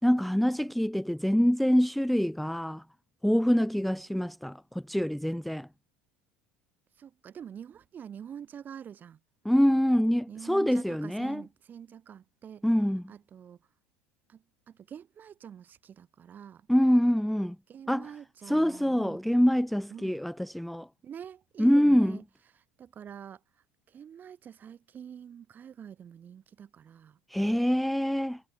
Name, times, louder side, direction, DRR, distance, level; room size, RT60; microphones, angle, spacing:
voice 1, 0.0-2.8 3.2-5.7 9.4-11.4 12.6-13.0 16.7-17.6 17.9-18.1 18.5-20.9 21.6-22.2 27.3-28.4, equal, ahead, 0.4 m, -25 dB
voice 2, 7.0-9.2 10.3-12.7 13.1-13.6 14.3-16.7 17.7-19.2 19.9-20.2 21.0-22.2 22.5-23.4 23.9-27.2, right 8 dB, 35° right, 3.1 m, -46 dB
hypercardioid pair, 90°, 5 cm